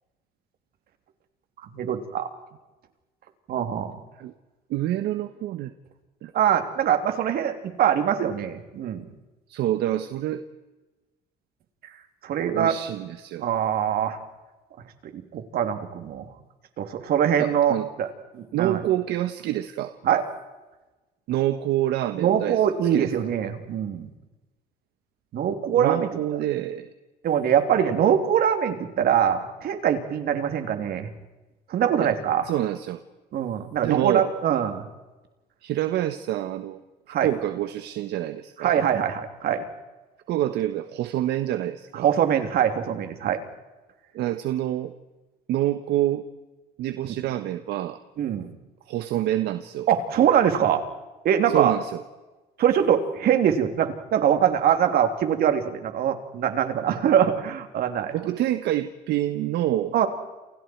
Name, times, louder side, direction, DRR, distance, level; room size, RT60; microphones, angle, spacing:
voice 1, 1.7-2.3 3.5-4.0 6.3-9.0 12.2-12.8 13.4-14.2 15.1-16.3 16.8-18.1 18.3-18.8 20.0-20.2 22.2-24.1 25.3-26.1 27.2-31.1 31.7-32.5 33.3-34.8 37.1-37.3 38.6-39.7 42.0-43.4 47.0-47.2 48.2-48.5 49.9-50.8 51.2-51.7 52.6-58.1 59.9-60.1, right 9 dB, 65° right, 7 dB, 3.4 m, -23 dB
voice 2, 4.7-5.7 6.2-6.3 9.5-10.4 12.5-13.5 17.4-17.9 18.5-20.0 21.3-22.6 22.9-23.1 25.7-26.9 32.0-32.1 32.5-33.0 33.8-34.3 35.6-36.8 37.1-38.8 40.3-42.1 44.1-44.9 45.5-46.3 46.8-48.0 48.9-49.9 51.5-52.0 58.1-59.9, right 13 dB, 80° right, 10 dB, 1.4 m, -27 dB
29.0 x 29.0 x 4.7 m, 1.1 s
cardioid pair, 110°, 17 cm